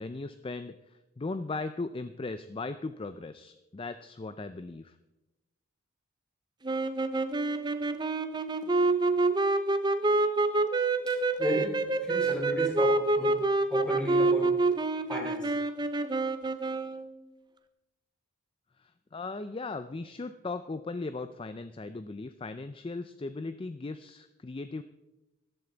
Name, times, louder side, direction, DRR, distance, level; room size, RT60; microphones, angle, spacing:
voice 1, 0.0-5.0 18.8-24.8, left 3 dB, 25° left, 11 dB, 0.3 m, -38 dB
sound 1, 6.6-17.1, right 2 dB, 20° right, 0.6 m, -27 dB
voice 2, 11.1-11.8 12.0-13.4 13.7-14.5 15.1-15.5, equal, 5° left, -2 dB, 3.5 m, -34 dB
14.0 x 11.5 x 3.9 m, 1.0 s
head